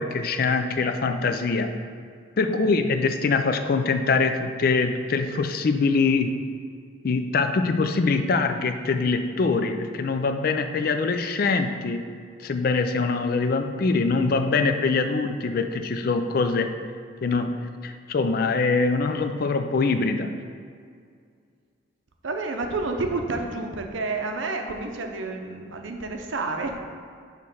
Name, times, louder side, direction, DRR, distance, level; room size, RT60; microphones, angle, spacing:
voice 1, 0.0-1.8 2.4-6.3 7.0-12.1 12.4-16.7 17.2-20.3, left 4 dB, 45° left, 7 dB, 0.3 m, -23 dB
voice 2, 22.2-26.8, right 3 dB, 70° right, 4 dB, 0.6 m, -29 dB
6.6 x 3.2 x 5.3 m, 2.2 s
head